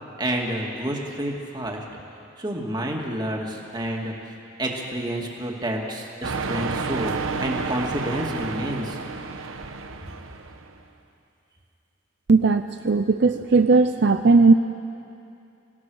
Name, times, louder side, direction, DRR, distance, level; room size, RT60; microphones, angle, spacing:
voice 1, 0.2-1.9 2.4-4.1 4.6-7.1 7.4-9.0, right 1 dB, 20° right, 0 dB, 2.3 m, -29 dB
sound 1, 6.2-10.8, right 4 dB, 90° right, 1.1 m, -30 dB
voice 2, 12.3-14.5, right 4 dB, 55° right, 8 dB, 0.5 m, -17 dB
28.5 x 17.5 x 6.4 m, 2.6 s
head